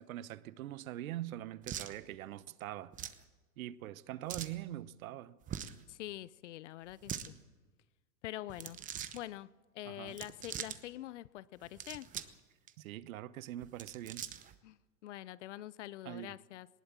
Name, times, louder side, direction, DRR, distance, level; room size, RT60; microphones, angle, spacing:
voice 1, 0.0-2.9 3.6-5.4 9.8-10.2 12.8-14.2 16.0-16.4, right 13 dB, 55° right, 1.0 m, -43 dB
sound 1, 1.6-1.9 2.9-3.2 4.3-4.6 5.4-5.8 6.9-7.3 8.5-9.2 10.1-10.8 11.6-12.4 12.7-12.8 13.6-14.5, right 9 dB, 15° right, 0.8 m, -42 dB
voice 2, 5.9-7.3 8.2-8.8 9.1-9.5 9.7-12.1 14.6-16.7, left 14 dB, 45° left, 0.6 m, -45 dB
19.5 x 18.5 x 7.4 m
hypercardioid pair, 130°, 50 cm